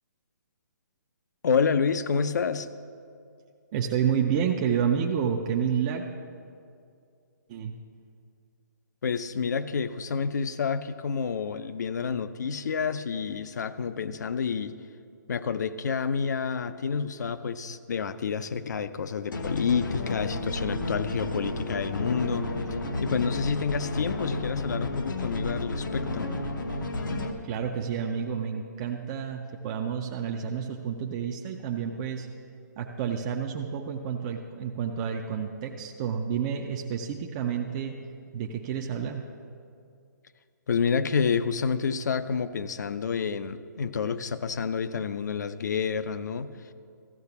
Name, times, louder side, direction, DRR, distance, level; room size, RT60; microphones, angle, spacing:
voice 1, 1.4-2.7 9.0-14.7 15.3-22.5 23.0-26.3 40.7-46.5, left 6 dB, 65° left, 13 dB, 0.5 m, -29 dB
voice 2, 3.7-6.1 7.5-7.7 27.4-32.3 32.8-38.0 38.3-39.3, right 7 dB, 20° right, 1 dB, 0.3 m, -29 dB
sound 1, 19.3-27.3, left 2 dB, 85° left, 1.1 m, -32 dB
13.5 x 5.7 x 6.9 m, 2.4 s
hypercardioid pair, 165°, 10 cm